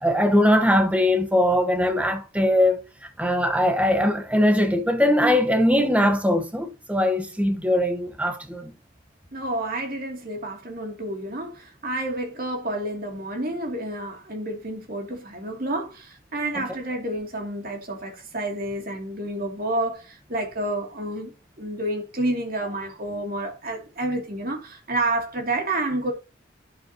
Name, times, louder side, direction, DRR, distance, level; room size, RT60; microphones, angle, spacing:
voice 1, 0.0-2.8 3.2-8.7 16.5-16.6, left 1 dB, 5° right, 1.1 m, -21 dB
voice 2, 9.3-21.3 21.6-26.1, right 1 dB, 45° right, 2.7 m, -29 dB
10.5 x 7.3 x 2.9 m
head